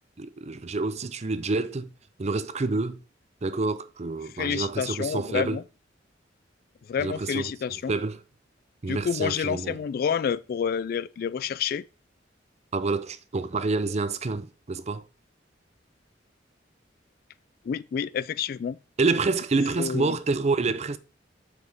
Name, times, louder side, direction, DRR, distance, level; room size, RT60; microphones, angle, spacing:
voice 1, 0.2-1.9 2.2-3.0 3.4-5.6 7.0-7.5 7.9-8.2 8.8-9.8 12.7-15.0 19.0-21.0, right 3 dB, 35° right, 0.5 m, -28 dB
voice 2, 4.3-5.6 6.9-7.9 8.9-11.8 17.7-18.8 19.8-20.2, left 7 dB, 55° left, 0.3 m, -29 dB
7.6 x 5.8 x 3.5 m
head